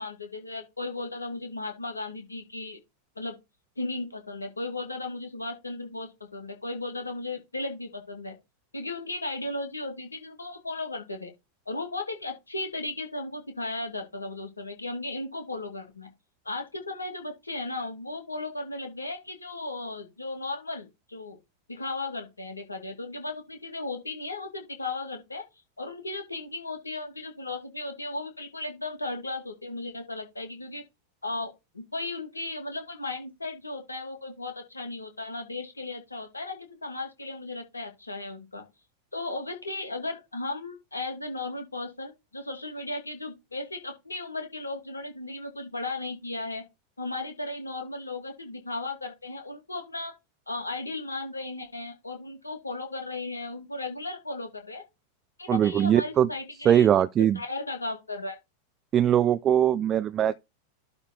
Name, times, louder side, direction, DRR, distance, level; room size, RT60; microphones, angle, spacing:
voice 1, 0.0-2.8 3.2-3.4 3.8-8.4 8.7-11.3 11.7-16.1 16.4-21.4 21.7-25.4 25.8-30.8 31.2-38.6 39.1-46.6 47.0-50.1 50.5-54.8 55.4-56.9 57.3-58.4, left 2 dB, 80° left, 2.7 m, -36 dB
voice 2, 55.5-56.3 56.6-57.4 58.9-60.3, right 10 dB, 30° right, 0.5 m, -21 dB
11.5 x 4.1 x 4.4 m
figure-of-eight pair, 90°, 0 cm